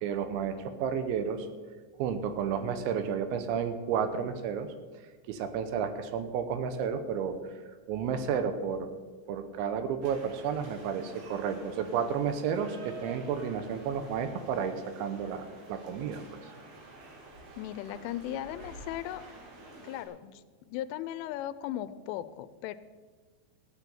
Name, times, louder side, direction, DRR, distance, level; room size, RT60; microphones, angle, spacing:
voice 1, 0.0-1.5 2.0-4.7 5.3-7.4 7.9-8.9 9.3-16.4, right 7 dB, 80° right, 9 dB, 3.1 m, -32 dB
sound 1, 10.0-20.0, right 2 dB, 45° right, 3.0 m, -49 dB
voice 2, 17.6-19.2 19.8-22.8, left 12 dB, 90° left, 14 dB, 3.1 m, -37 dB
14.5 x 8.3 x 7.1 m, 1.5 s
omnidirectional pair, 5.5 m